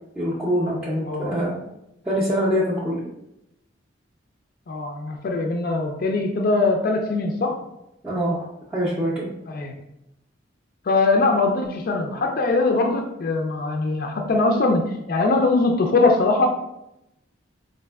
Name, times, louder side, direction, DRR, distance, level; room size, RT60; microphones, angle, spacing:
voice 1, 0.2-1.6 2.1-3.0 8.0-8.5 8.7-9.3, equal, 5° right, -8 dB, 0.5 m, -24 dB
voice 2, 1.0-1.3 4.7-7.6 9.5-9.8 10.9-16.5, left 3 dB, 50° left, 2 dB, 0.4 m, -21 dB
4.2 x 2.5 x 2.3 m, 0.85 s
head